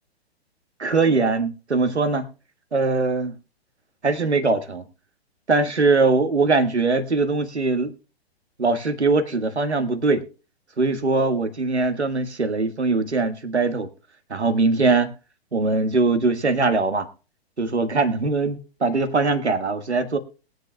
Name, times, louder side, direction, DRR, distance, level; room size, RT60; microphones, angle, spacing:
voice 1, 0.8-2.2 2.7-3.3 4.0-4.8 5.5-7.9 8.6-10.2 10.8-13.9 14.3-15.1 15.5-17.1 17.6-20.2, right 3 dB, 85° right, 9 dB, 1.5 m, -21 dB
21.5 x 7.9 x 2.2 m, 0.35 s
figure-of-eight pair, 120°, 33 cm